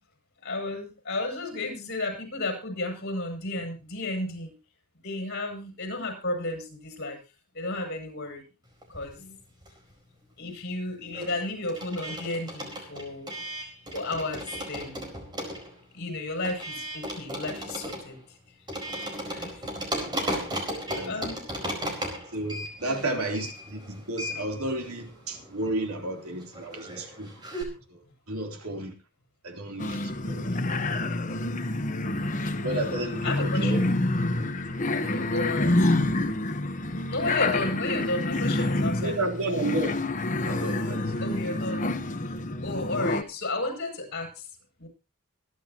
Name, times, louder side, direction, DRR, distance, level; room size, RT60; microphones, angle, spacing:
voice 1, 0.4-4.5 5.0-7.2 7.5-8.4 8.9-9.4 10.4-13.3 13.9-15.1 15.9-18.2 19.3-20.5 21.0-21.4 22.8-23.4 32.0-32.3 33.2-33.9 35.1-35.8 37.1-39.3 41.2-41.9 42.6-44.5 44.8-44.9, left 2 dB, 50° left, 7.4 m, -33 dB
sound 1, 8.8-10.1 10.3-27.6, equal, 20° right, 4.5 m, -36 dB
voice 2, 20.0-20.5 20.9-21.2 22.3-27.4 27.9-28.9 29.4-30.6 31.9-32.0 32.6-33.8 34.7-35.1 39.0-39.9 40.5-41.2, right 2 dB, 80° right, 3.5 m, -32 dB
sound 2, 29.8-43.2, left 2 dB, 35° left, 1.2 m, -27 dB
25.5 x 11.5 x 3.0 m
head